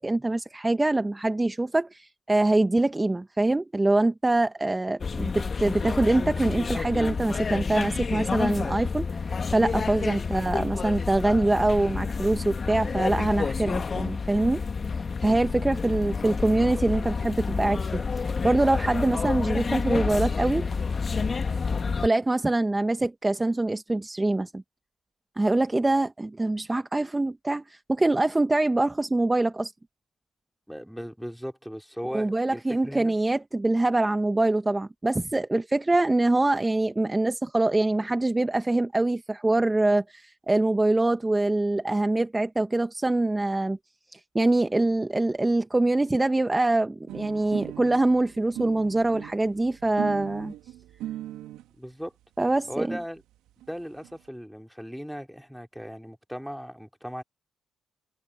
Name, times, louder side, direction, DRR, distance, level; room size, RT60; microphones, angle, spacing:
voice 1, 0.0-14.6 14.9-20.7 22.0-24.6 25.4-29.7 32.1-43.8 44.1-50.5 52.4-53.0, right 2 dB, 20° right, 1.3 m, -24 dB
sound 1, 5.0-22.1, left 5 dB, 40° left, 1.9 m, -29 dB
voice 2, 30.7-33.2 51.8-52.1 52.7-53.2 53.7-57.2, equal, ahead, 3.6 m, -38 dB
sound 2, 47.1-51.7 52.5-52.6 52.8-52.9 53.2-53.3 53.5-54.1, right 13 dB, 85° right, 1.7 m, -39 dB
supercardioid pair, 65°, 0 cm